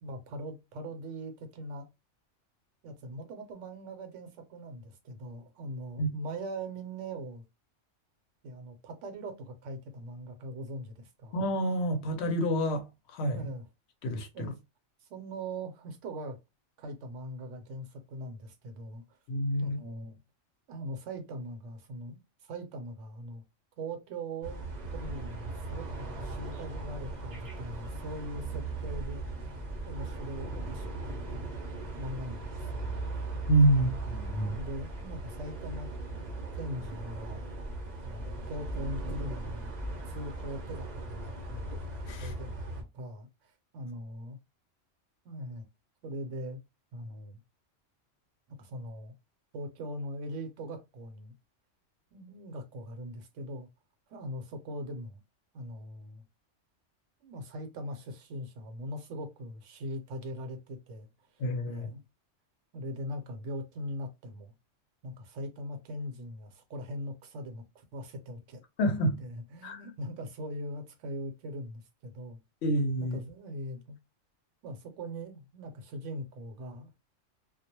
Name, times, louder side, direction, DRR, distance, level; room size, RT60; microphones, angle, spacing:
voice 1, 0.0-1.9 2.8-7.4 8.4-11.4 13.3-13.7 14.3-14.6 15.0-16.4 16.8-19.2 19.6-20.2 20.7-23.4 23.8-31.5 32.0-33.0 34.4-37.4 38.0-39.7 40.1-41.7 42.2-44.4 45.2-45.6 46.0-46.6 46.9-47.4 48.5-49.1 49.5-51.3 52.1-53.7 54.1-55.2 55.5-56.2 57.2-61.1 61.7-62.0 62.7-64.5 65.0-68.6 69.2-72.4 73.0-74.0 74.6-76.9, equal, 80° right, 1.0 m, -41 dB
voice 2, 11.3-13.5 14.0-14.5 19.3-19.8 33.5-34.6 42.1-42.3 61.4-61.9 68.8-69.2 69.6-69.8 72.6-73.2, right 1 dB, 70° left, 0.8 m, -28 dB
sound 1, 24.4-42.8, right 2 dB, 45° right, 0.6 m, -38 dB
2.3 x 2.0 x 2.8 m
omnidirectional pair, 1.3 m